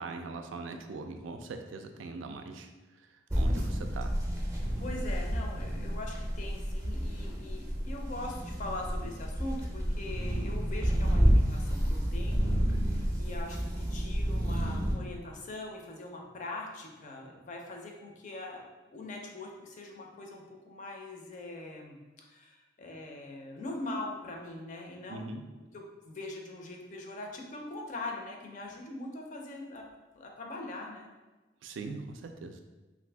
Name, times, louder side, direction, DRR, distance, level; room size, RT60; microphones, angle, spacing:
voice 1, 0.0-2.7 3.0-4.1 25.1-25.5 31.6-32.6, right 3 dB, 85° right, 6 dB, 0.3 m, -41 dB
sound 1, 3.3-14.9, equal, 15° right, 0.5 m, -30 dB
voice 2, 4.5-12.5 12.9-18.6 18.9-25.4 25.7-29.8 30.1-31.1, left 2 dB, 40° left, 1 dB, 0.5 m, -42 dB
2.6 x 2.6 x 3.3 m, 1.2 s
head